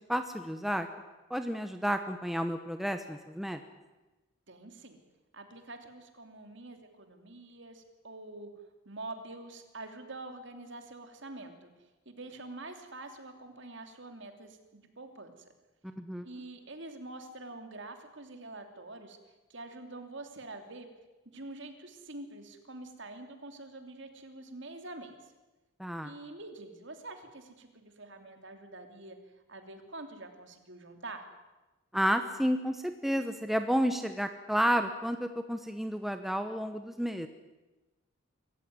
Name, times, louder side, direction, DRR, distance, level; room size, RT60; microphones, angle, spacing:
voice 1, 0.1-0.9 1.3-3.6 15.8-16.2 25.8-26.1 31.9-37.3, equal, ahead, 7 dB, 0.9 m, -31 dB
voice 2, 4.5-5.0 5.3-8.5 8.8-11.7 12.0-15.5 16.2-19.2 19.5-20.9 21.2-25.3 26.0-31.3, right 2 dB, 55° right, 6 dB, 3.0 m, -46 dB
25.5 x 15.0 x 9.7 m, 1.1 s
head